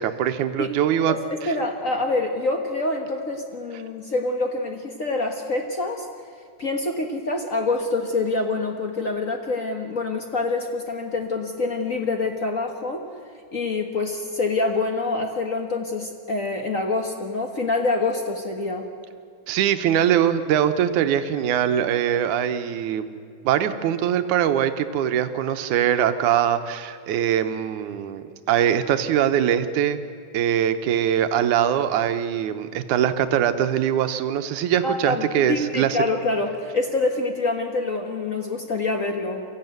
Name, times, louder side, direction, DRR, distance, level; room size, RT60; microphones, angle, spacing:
voice 1, 0.0-1.1 19.5-23.1 23.5-30.0 30.3-36.0, right 10 dB, 90° right, 9 dB, 2.4 m, -22 dB
voice 2, 1.1-6.1 6.6-13.0 13.5-18.9 34.8-39.4, left 3 dB, 55° left, 4 dB, 0.9 m, -26 dB
23.5 x 14.5 x 9.3 m, 2.2 s
omnidirectional pair, 3.4 m